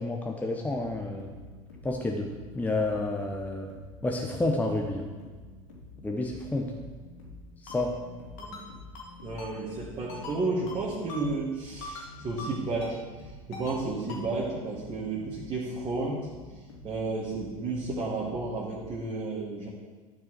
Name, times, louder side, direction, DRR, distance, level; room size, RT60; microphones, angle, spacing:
voice 1, 0.0-1.3 1.8-2.3 2.5-3.7 4.0-5.1 6.0-6.7 7.6-7.9, left 2 dB, 10° left, 1 dB, 1.0 m, -29 dB
sound 1, 0.5-18.9, left 2 dB, 70° left, 3.1 m, -49 dB
Ringtone, 7.7-7.8 8.4-8.7 8.9-9.1 9.4-9.5 10.1-10.4 10.7-10.8 11.1-11.2 11.8-12.1 12.4-12.5 12.8-12.9 13.5-13.8 14.1-14.2, left 2 dB, 55° left, 2.4 m, -41 dB
voice 2, 9.2-13.0 13.5-16.3 16.8-19.7, right 3 dB, 30° right, -5 dB, 1.9 m, -32 dB
12.0 x 6.1 x 4.5 m, 1.4 s
figure-of-eight pair, 75°, 17 cm